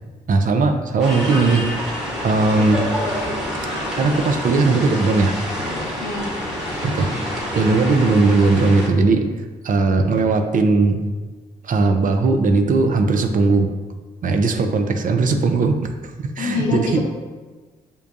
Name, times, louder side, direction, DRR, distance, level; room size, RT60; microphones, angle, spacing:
voice 1, 0.3-2.9 3.9-5.3 6.8-7.1 7.5-9.3 9.6-11.0 11.6-13.7 14.2-15.9 16.2-17.0, right 3 dB, 45° right, 6 dB, 0.5 m, -18 dB
sound 1, 1.0-8.9, equal, ahead, 1.2 m, -27 dB
voice 2, 6.0-6.4 16.4-17.0, left 4 dB, 80° left, 0 dB, 0.6 m, -25 dB
5.2 x 2.2 x 2.5 m, 1.3 s
hypercardioid pair, 45°, 19 cm